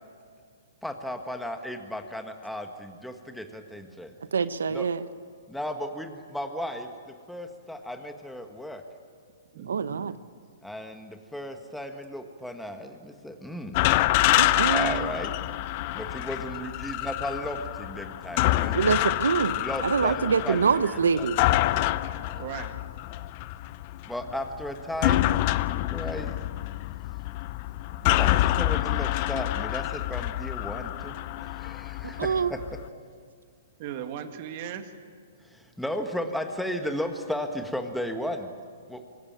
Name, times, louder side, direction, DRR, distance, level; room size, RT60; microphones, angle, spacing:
voice 1, 0.8-4.1 4.7-4.8 5.5-8.8 10.6-13.8 14.7-15.3 15.9-19.0 19.5-21.3 22.3-22.4 24.1-25.3 25.9-26.3 28.0-31.1 31.4-32.6 35.5-38.5 38.9-39.0, left 1 dB, ahead, 5 dB, 1.5 m, -35 dB
voice 2, 4.2-5.1 9.7-10.1 14.4-15.1 18.7-19.5 19.8-21.4 32.0-32.5, right 6 dB, 80° right, 14 dB, 0.8 m, -25 dB
voice 3, 9.5-10.2 17.4-17.5 22.4-22.8 27.9-28.2 31.0-31.2 33.8-34.9, right 9 dB, 45° right, 8 dB, 1.9 m, -38 dB
sound 1, 13.7-32.8, left 16 dB, 40° left, 0.7 m, -27 dB
25.5 x 16.5 x 9.0 m, 2.1 s
hypercardioid pair, 130°, 0 cm